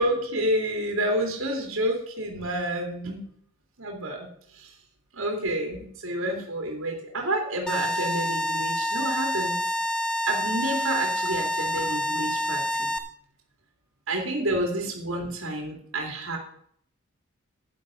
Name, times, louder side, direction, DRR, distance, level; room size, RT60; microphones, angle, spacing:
voice 1, 0.0-3.3 3.8-4.3 4.5-4.7 5.1-9.6 10.3-12.9 14.1-16.4, right 1 dB, 70° right, 1 dB, 2.7 m, -29 dB
sound 1, 7.7-13.0, left 1 dB, 5° left, 0.7 m, -27 dB
10.5 x 10.0 x 5.1 m, 0.63 s
head